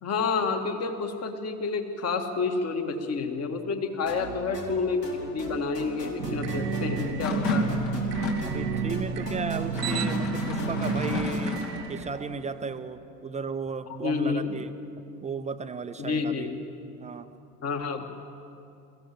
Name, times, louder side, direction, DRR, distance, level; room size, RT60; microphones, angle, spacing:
voice 1, 0.0-7.7 14.0-14.5 16.0-16.6 17.6-18.0, left 4 dB, 30° left, 6 dB, 1.8 m, -29 dB
sound 1, 4.1-11.8, equal, 85° left, 2.4 m, -40 dB
sound 2, 6.2-12.8, right 6 dB, 80° right, 1.0 m, -32 dB
sound 3, 7.2-8.5 9.6-11.9, left 2 dB, 60° left, 2.8 m, -30 dB
voice 2, 8.4-11.6 11.9-14.7 15.2-16.5 17.0-17.3, right 5 dB, 15° right, 9 dB, 0.6 m, -35 dB
23.0 x 15.5 x 7.6 m, 2.7 s
figure-of-eight pair, 75°, 47 cm